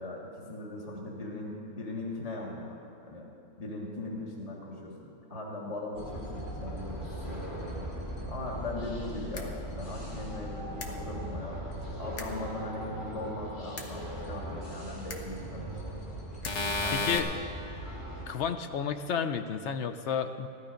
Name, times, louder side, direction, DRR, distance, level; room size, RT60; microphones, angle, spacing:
voice 1, 0.0-3.3 3.6-7.9 8.3-11.6 12.0-15.9 16.8-17.2, left 2 dB, 25° left, -2 dB, 1.7 m, -39 dB
sound 1, 5.9-18.3, right 1 dB, 40° left, 3.2 m, -39 dB
sound 2, 9.3-9.4 10.8-10.9 12.2-12.3 13.8-13.9 15.1-15.2 16.4-17.2, left 3 dB, 90° left, 1.6 m, -31 dB
voice 2, 16.9-17.3 18.3-20.5, left 7 dB, 60° left, 8 dB, 0.8 m, -31 dB
15.0 x 12.5 x 5.1 m, 2.6 s
omnidirectional pair, 1.6 m